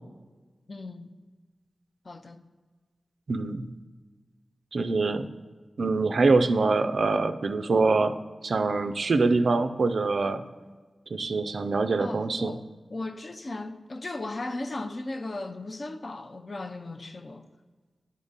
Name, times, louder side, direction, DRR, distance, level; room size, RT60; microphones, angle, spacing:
voice 1, 0.7-1.1 2.0-2.4 12.0-12.6 12.9-17.4, left 2 dB, 50° left, 0.5 m, -36 dB
voice 2, 3.3-3.7 4.7-5.3 5.8-8.1 8.4-10.4 11.1-12.6, right 3 dB, 70° right, 0.4 m, -24 dB
9.4 x 3.6 x 4.0 m
wide cardioid pair, 65°, 0 cm